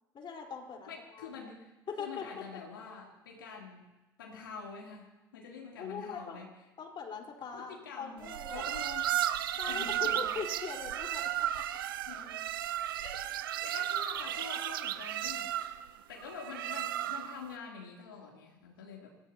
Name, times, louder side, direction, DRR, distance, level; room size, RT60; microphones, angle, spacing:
voice 1, 0.1-1.3 1.9-2.4 5.8-6.4 6.8-8.7 9.6-11.2 13.0-13.2, left 6 dB, 45° left, 1 dB, 4.5 m, -41 dB
voice 2, 0.9-1.7 2.0-3.9 4.2-6.5 7.5-9.1 9.7-10.3 12.1-12.5 13.3-15.5 16.1-19.1, left 5 dB, 85° left, -2 dB, 3.3 m, -46 dB
sound 1, 8.2-17.5, right 12 dB, 85° right, 0.8 m, -34 dB
29.5 x 16.0 x 3.0 m, 1.1 s
hypercardioid pair, 60°, 11 cm